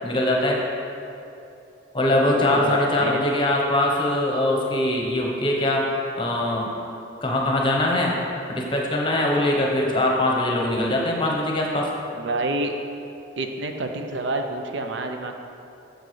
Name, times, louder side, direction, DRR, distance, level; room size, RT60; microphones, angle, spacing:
voice 1, 0.0-0.6 1.9-5.8 6.2-6.7 7.2-8.2 8.5-11.9, left 1 dB, 25° left, -1 dB, 0.9 m, -22 dB
voice 2, 2.1-3.2 12.2-12.7 13.4-15.4, right 2 dB, 65° right, 5 dB, 0.5 m, -28 dB
8.9 x 6.6 x 3.3 m, 2.8 s
head